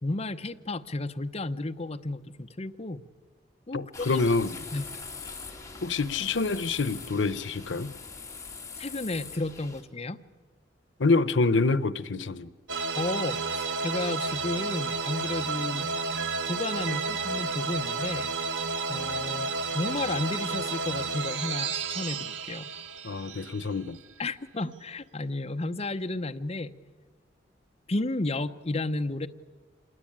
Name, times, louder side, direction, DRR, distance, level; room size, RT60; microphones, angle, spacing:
voice 1, 0.0-3.0 3.7-4.2 4.7-4.9 8.8-10.2 13.0-15.9 16.5-18.3 18.9-22.7 24.2-26.7 27.9-29.3, left 2 dB, 35° left, 0.8 m, -32 dB
voice 2, 3.7-4.6 5.8-7.9 11.0-12.5 23.0-24.0, left 3 dB, 90° left, 0.8 m, -26 dB
sound 1, 3.9-9.8, left 4 dB, 15° left, 3.1 m, -42 dB
sound 2, 12.7-24.1, right 4 dB, 80° right, 1.1 m, -31 dB
27.0 x 21.0 x 8.8 m
head